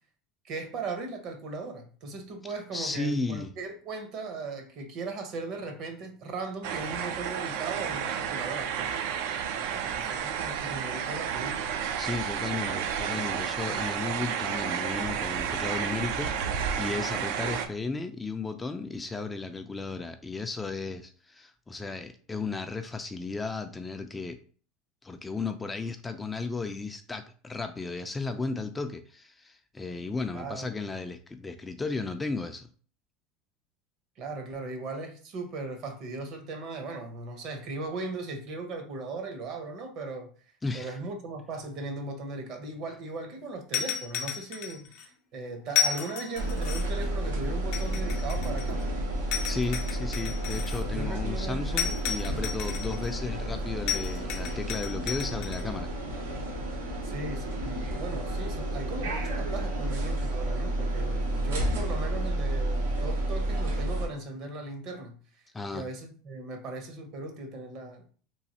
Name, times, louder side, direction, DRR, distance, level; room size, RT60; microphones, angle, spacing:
voice 1, 0.4-9.3 9.6-11.7 30.3-31.0 34.2-40.3 40.7-49.0 50.9-51.7 57.0-65.2 65.7-68.1, right 3 dB, 55° right, 0.8 m, -38 dB
voice 2, 2.7-3.5 12.0-24.4 25.0-32.7 40.6-41.0 49.3-55.9 65.5-65.9, left 3 dB, 15° left, 0.3 m, -34 dB
sound 1, 6.6-17.7, right 8 dB, 70° right, 0.3 m, -31 dB
sound 2, 43.7-45.0 45.7-47.0 47.7-48.8 49.3-50.8 51.8-53.1 53.9-55.6, left 9 dB, 65° left, 0.6 m, -33 dB
sound 3, 46.3-64.1, right 1 dB, 90° right, 0.8 m, -31 dB
3.1 x 2.4 x 2.8 m
supercardioid pair, 105°, 0 cm